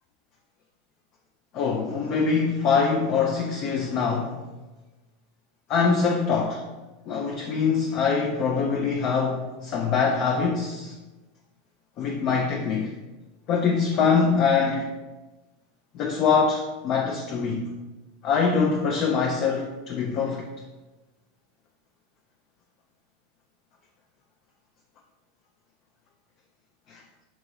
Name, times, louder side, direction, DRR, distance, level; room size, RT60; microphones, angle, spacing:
voice 1, 1.5-4.4 5.7-6.6 7.1-10.9 12.0-13.0 13.5-14.9 15.9-17.7 18.2-20.4 26.9-27.0, left 5 dB, 45° left, 0 dB, 0.4 m, -24 dB
3.5 x 2.7 x 3.1 m, 1.1 s
figure-of-eight pair, 85°, 0 cm